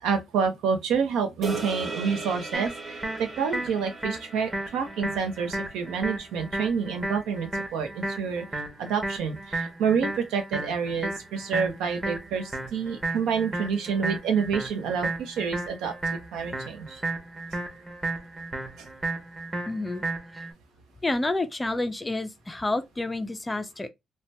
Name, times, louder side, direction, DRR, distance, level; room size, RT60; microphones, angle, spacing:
voice 1, 0.0-15.9 16.3-17.0 18.8-18.9, right 6 dB, 90° right, 0.6 m, -28 dB
sound 1, 1.4-5.9, right 4 dB, 45° right, 0.8 m, -38 dB
sound 2, 2.5-20.5, right 2 dB, 20° right, 0.9 m, -34 dB
voice 2, 19.7-20.0 20.3-20.4 21.0-23.9, left 2 dB, 15° left, 0.3 m, -29 dB
2.6 x 2.1 x 3.2 m
cardioid pair, 90°, 0 cm